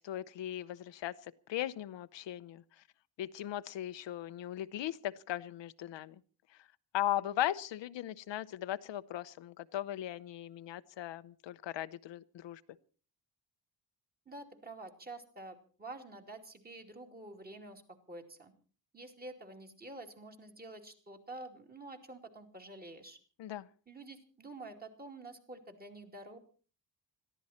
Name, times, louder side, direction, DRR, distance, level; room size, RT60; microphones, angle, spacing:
voice 1, 0.0-2.6 3.2-6.2 6.6-6.7 6.9-12.6 23.4-23.7, left 12 dB, 80° left, 13 dB, 0.8 m, -38 dB
voice 2, 14.3-17.8 18.1-18.5 18.9-23.2 23.9-26.4, right 2 dB, 20° right, 4 dB, 2.6 m, -48 dB
21.5 x 14.5 x 4.3 m, 0.40 s
wide cardioid pair, 160°, 43 cm